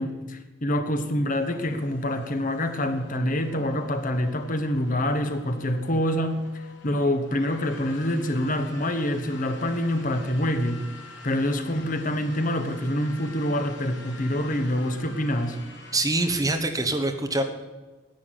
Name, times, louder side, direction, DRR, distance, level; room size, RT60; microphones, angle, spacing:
voice 1, 0.0-10.9 11.2-15.6, left 1 dB, 45° left, 8 dB, 1.3 m, -26 dB
sound 1, 1.3-15.9, left 3 dB, 80° left, 2.6 m, -48 dB
voice 2, 15.9-17.4, right 2 dB, 20° right, 5 dB, 1.4 m, -24 dB
10.5 x 9.5 x 9.1 m, 1.2 s
head